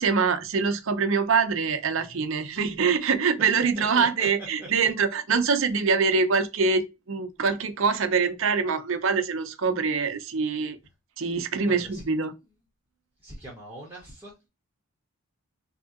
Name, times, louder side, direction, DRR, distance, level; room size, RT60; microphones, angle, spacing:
voice 1, 0.0-10.8 11.2-12.3, right 5 dB, 60° right, 0.5 m, -24 dB
voice 2, 2.0-2.7 3.6-4.9 11.6-12.0 13.2-14.5, right 1 dB, 10° right, 0.8 m, -42 dB
3.6 x 2.7 x 2.4 m
head